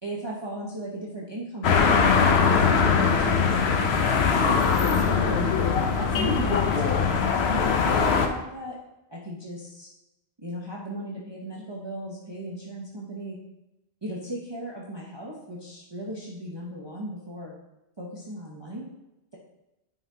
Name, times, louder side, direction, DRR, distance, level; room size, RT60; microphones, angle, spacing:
voice 1, 0.0-4.3 4.7-5.5 6.0-8.7 9.1-9.9 10.4-13.4 14.0-17.6 18.0-18.9, right 1 dB, 25° right, -5 dB, 1.0 m, -37 dB
sound 1, 1.6-8.3, left 5 dB, 80° left, 1.0 m, -21 dB
9.2 x 5.7 x 2.8 m, 0.93 s
omnidirectional pair, 1.1 m